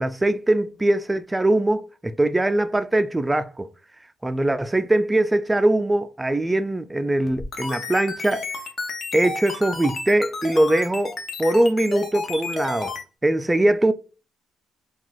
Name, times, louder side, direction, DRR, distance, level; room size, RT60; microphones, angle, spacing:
voice 1, 0.0-3.7 4.2-8.5 9.1-11.1 11.4-12.9 13.2-13.9, right 1 dB, 15° right, 0.4 m, -21 dB
sound 1, 7.3-13.0, left 3 dB, 45° left, 1.1 m, -31 dB
4.5 x 2.3 x 3.8 m
cardioid pair, 90°, 0 cm